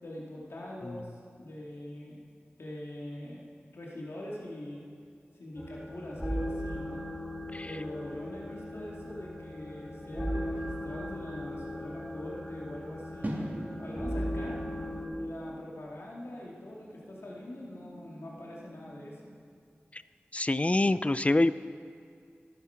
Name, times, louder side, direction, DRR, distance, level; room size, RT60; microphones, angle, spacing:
voice 1, 0.0-2.2 2.6-3.4 3.7-4.8 5.3-7.0 7.6-13.5 13.8-14.6 15.2-19.3, left 1 dB, 80° left, -4 dB, 2.3 m, -43 dB
sound 1, 5.6-15.1, equal, 5° left, 4.3 m, -37 dB
sound 2, 13.2-19.4, right 1 dB, 45° right, 2.6 m, -43 dB
voice 2, 20.3-21.5, left 2 dB, 30° left, 15 dB, 0.5 m, -26 dB
13.0 x 12.5 x 5.8 m, 2.3 s
cardioid pair, 45°, 4 cm